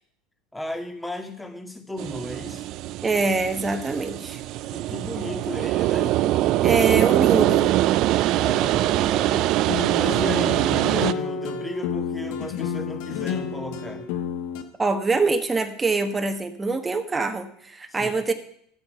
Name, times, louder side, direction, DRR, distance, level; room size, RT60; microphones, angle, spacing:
voice 1, 0.5-2.6 4.7-6.3 6.7-6.8 8.3-9.4 9.9-14.1 18.0-18.1, left 1 dB, 5° left, 6 dB, 2.0 m, -35 dB
sound 1, 2.0-11.1, right 15 dB, 55° right, 0.5 m, -23 dB
voice 2, 3.0-4.4 6.6-7.7 14.8-18.3, right 3 dB, 20° right, 6 dB, 1.4 m, -24 dB
sound 2, 9.7-14.6, left 7 dB, 70° left, 1.5 m, -30 dB
11.5 x 8.1 x 6.9 m, 0.65 s
hypercardioid pair, 95°, 0 cm